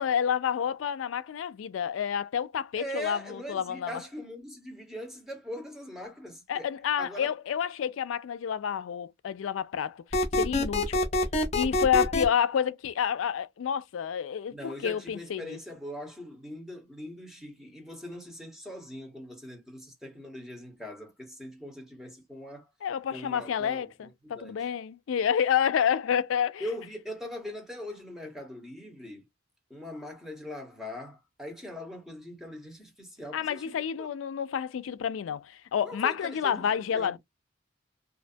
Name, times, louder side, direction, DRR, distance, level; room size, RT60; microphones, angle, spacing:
voice 1, 0.0-3.9 6.5-10.0 10.3-11.0 11.5-15.6 22.8-26.6 33.3-37.2, left 8 dB, 90° left, 0.4 m, -29 dB
voice 2, 2.7-6.7 7.0-7.3 14.5-22.6 23.1-24.6 26.6-29.3 29.7-34.1 35.8-37.2, left 1 dB, ahead, 1.0 m, -41 dB
sound 1, 10.1-12.2, left 1 dB, 35° left, 0.6 m, -25 dB
2.5 x 2.3 x 2.5 m
head